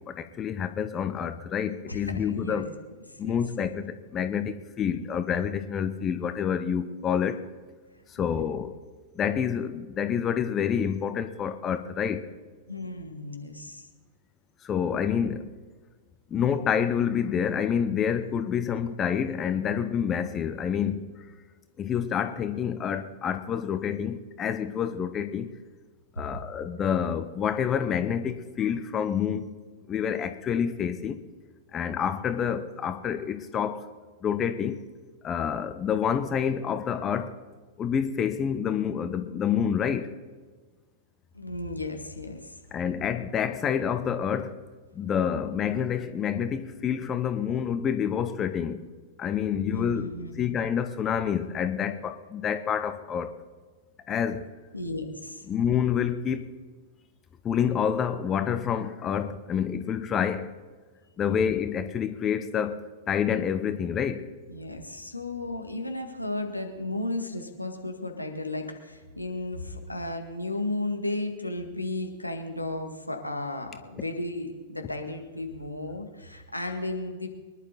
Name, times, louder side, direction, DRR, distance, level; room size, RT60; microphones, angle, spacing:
voice 1, 0.1-2.7 3.2-7.4 8.1-8.8 9.1-12.3 14.6-15.5 16.3-21.1 21.8-25.5 26.2-29.5 29.9-31.2 31.7-33.9 34.2-34.8 35.2-37.4 37.8-40.1 42.7-44.6 44.9-48.8 49.2-50.1 50.4-53.3 54.1-54.5 55.5-56.5 57.4-60.5 61.2-62.8 63.1-64.3, left 8 dB, 25° left, 0.9 m, -28 dB
voice 2, 1.9-2.6 3.1-3.4 8.2-8.4 12.7-13.9 26.2-26.3 41.3-42.6 49.7-50.6 54.7-55.4 64.5-77.3, left 2 dB, 85° left, 1.8 m, -34 dB
24.0 x 11.0 x 4.1 m
figure-of-eight pair, 95°, 0 cm